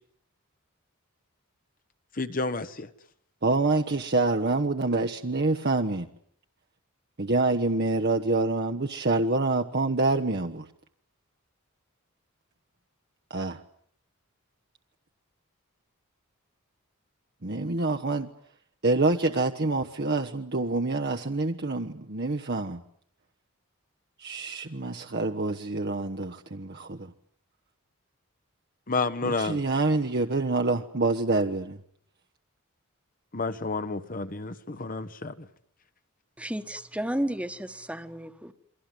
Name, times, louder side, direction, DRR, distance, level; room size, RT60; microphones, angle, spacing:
voice 1, 2.1-2.9 28.9-29.6 33.3-35.5, left 3 dB, 40° left, 1.2 m, -30 dB
voice 2, 3.4-6.1 7.2-10.7 13.3-13.6 17.4-18.3 18.8-22.8 24.2-27.1 29.2-31.8, right 3 dB, 45° right, 1.1 m, -26 dB
voice 3, 36.4-38.5, right 1 dB, 5° right, 1.4 m, -32 dB
28.5 x 23.5 x 7.8 m
head